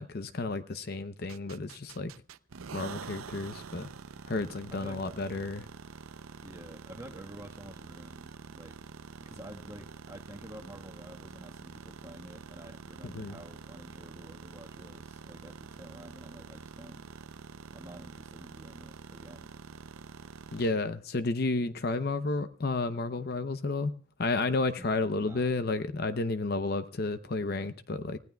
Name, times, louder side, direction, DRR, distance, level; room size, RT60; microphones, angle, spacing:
voice 1, 0.0-2.1 2.7-3.9 4.3-5.7 13.0-13.4 20.5-23.9 24.2-28.2, left 3 dB, 50° left, 0.7 m, -31 dB
sound 1, 1.3-20.7, right 5 dB, 85° right, 0.6 m, -47 dB
voice 2, 6.4-8.8 9.2-17.0 17.7-19.5 24.8-24.9 25.2-25.5, right 1 dB, 15° right, 1.4 m, -49 dB
28.5 x 16.5 x 2.3 m
head